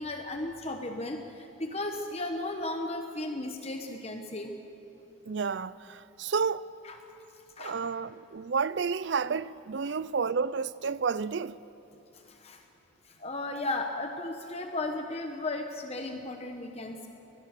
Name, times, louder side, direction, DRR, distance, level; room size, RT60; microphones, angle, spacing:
voice 1, 0.0-4.5 6.8-7.0 7.6-7.9 9.8-9.9 12.3-12.6 13.1-17.1, left 2 dB, 30° left, 1.1 m, -35 dB
voice 2, 5.3-6.7 7.6-11.6, right 5 dB, 60° right, 0.5 m, -31 dB
23.0 x 20.5 x 6.7 m
head